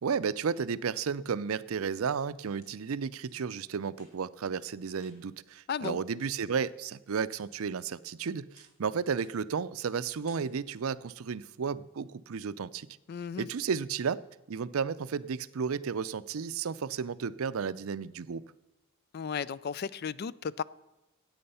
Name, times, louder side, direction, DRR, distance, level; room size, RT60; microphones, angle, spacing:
voice 1, 0.0-12.9 13.4-14.2 14.5-18.4, right 6 dB, 80° right, 0.5 m, -33 dB
sound 1, 2.2-2.7 3.2-3.3 3.9-4.4 5.0-5.5 5.8-5.9 6.3-6.4 6.9-7.4 7.8-8.2 8.6-8.8 9.2-9.5 9.8-10.0 10.3-10.8, left 2 dB, 80° left, 3.9 m, -63 dB
voice 2, 5.7-6.0 13.1-13.5 19.1-20.6, left 6 dB, 45° left, 0.3 m, -34 dB
14.0 x 8.8 x 5.6 m
head